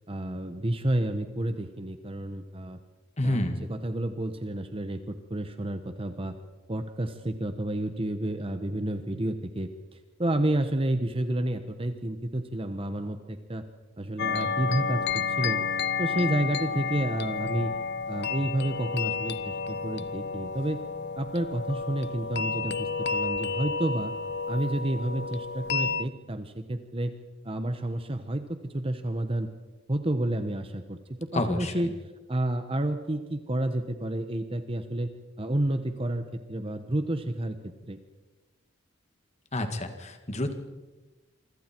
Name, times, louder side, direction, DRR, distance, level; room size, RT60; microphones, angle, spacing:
voice 1, 0.1-2.8 3.2-3.4 3.7-6.3 6.7-13.6 14.0-15.6 16.0-17.7 18.1-20.8 21.2-24.1 24.5-27.1 27.4-29.5 29.9-32.0 32.3-35.1 35.4-37.6 37.9-38.0, right 1 dB, 30° right, 8 dB, 1.1 m, -30 dB
voice 2, 3.2-3.7 31.3-31.7 39.5-40.5, left 1 dB, 35° left, 7 dB, 2.1 m, -29 dB
sound 1, 14.2-26.0, left 5 dB, 55° left, 0.6 m, -31 dB
26.5 x 24.5 x 4.6 m, 1.2 s
head